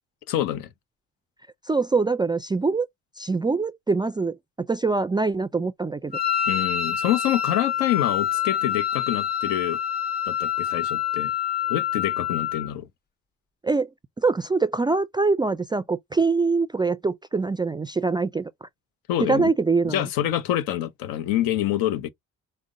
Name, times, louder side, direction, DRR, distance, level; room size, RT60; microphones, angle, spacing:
voice 1, 0.3-0.7 6.5-9.8 10.3-11.3 11.7-12.9 19.1-19.5 19.8-22.1, left 12 dB, 85° left, 0.7 m, -26 dB
voice 2, 1.7-2.9 3.2-6.2 13.6-13.9 14.2-18.7 19.2-20.1, right 4 dB, 15° right, 0.3 m, -24 dB
Wind instrument woodwind instrument, 6.1-12.7, left 9 dB, 30° left, 1.0 m, -26 dB
5.0 x 2.1 x 3.7 m
supercardioid pair, 75°, 33 cm